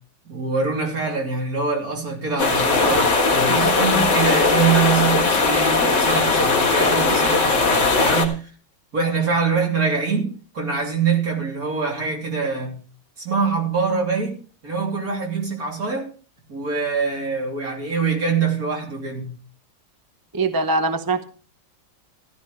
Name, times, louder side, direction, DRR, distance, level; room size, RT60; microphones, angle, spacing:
voice 1, 0.3-8.5 8.9-12.8 13.2-16.1 16.5-19.3, right 5 dB, 50° right, -1 dB, 3.6 m, -24 dB
sound 1, 2.4-8.2, left 3 dB, 65° left, 2.4 m, -19 dB
voice 2, 20.3-21.2, right 3 dB, 20° right, 7 dB, 0.5 m, -22 dB
14.5 x 12.5 x 3.3 m, 0.38 s
omnidirectional pair, 2.0 m